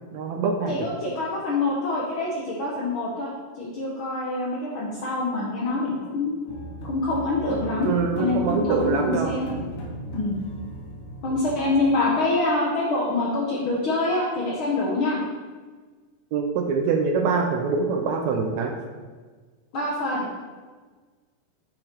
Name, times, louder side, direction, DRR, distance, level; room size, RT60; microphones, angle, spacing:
voice 1, 0.1-0.8 7.8-9.4 16.3-18.7, right 5 dB, 80° right, 3 dB, 1.6 m, -24 dB
voice 2, 0.7-3.3 3.6-6.4 6.9-7.9 8.2-9.5 10.1-10.3 11.2-15.2 19.7-20.3, left 2 dB, 80° left, -3 dB, 1.1 m, -25 dB
sound 1, 6.5-11.9, equal, 55° left, 1.7 m, -35 dB
8.8 x 5.8 x 4.5 m, 1.4 s
omnidirectional pair, 4.0 m